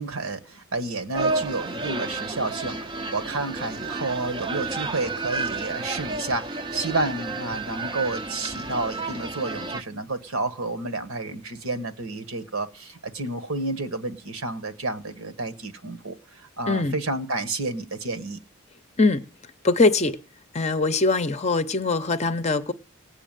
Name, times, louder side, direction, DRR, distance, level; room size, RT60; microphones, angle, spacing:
voice 1, 0.0-18.4, right 2 dB, 65° right, 1.5 m, -30 dB
sound 1, 1.1-9.8, right 3 dB, 20° right, 0.7 m, -31 dB
voice 2, 19.6-20.2 20.5-22.7, left 3 dB, 30° left, 0.7 m, -22 dB
18.0 x 7.1 x 9.1 m
head